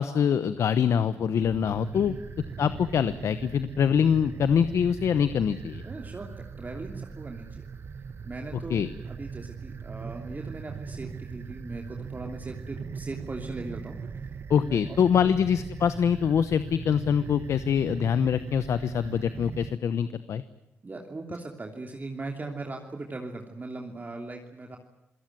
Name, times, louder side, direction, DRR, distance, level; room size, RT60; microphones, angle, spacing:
voice 1, 0.0-2.1 2.6-5.8 8.7-8.9 14.5-20.4, left 8 dB, 75° left, 13 dB, 1.0 m, -24 dB
sound 1, 1.4-19.7, right 5 dB, 55° right, 1.3 m, -39 dB
voice 2, 1.9-2.2 5.8-6.3 6.6-7.6 8.2-14.0 14.6-15.3 20.8-24.8, right 3 dB, 35° right, 2 dB, 3.0 m, -39 dB
28.0 x 17.5 x 9.3 m, 0.86 s
cardioid pair, 65°, 5 cm